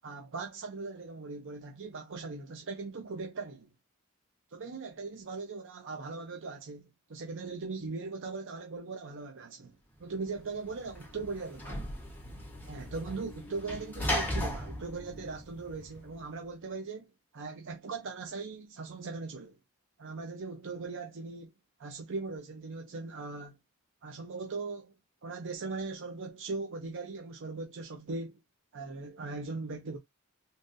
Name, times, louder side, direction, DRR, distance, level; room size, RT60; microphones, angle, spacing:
voice 1, 0.0-3.7 4.5-11.8 12.7-19.6 20.0-21.5 21.8-23.6 24.0-24.9 25.2-28.4 28.7-30.0, right 4 dB, 60° right, 0.6 m, -39 dB
Sliding door / Slam, 10.3-16.2, left 1 dB, 10° left, 1.1 m, -37 dB
3.7 x 2.7 x 2.6 m
head